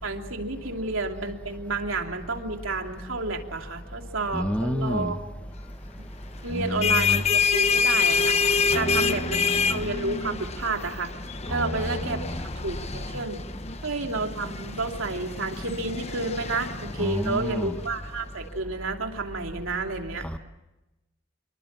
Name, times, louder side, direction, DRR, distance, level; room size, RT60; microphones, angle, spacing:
voice 1, 0.0-5.2 6.4-8.4 8.7-11.1 11.5-12.2 12.6-13.4 13.8-20.3, right 3 dB, 80° right, 4 dB, 2.8 m, -30 dB
voice 2, 4.3-5.1 6.5-7.2 8.7-9.8 11.5-12.4 17.0-17.8 20.2-20.4, equal, 5° left, 7 dB, 1.3 m, -30 dB
sound 1, 6.6-17.9, left 5 dB, 30° left, 1.0 m, -27 dB
25.5 x 23.5 x 7.4 m, 1.0 s
head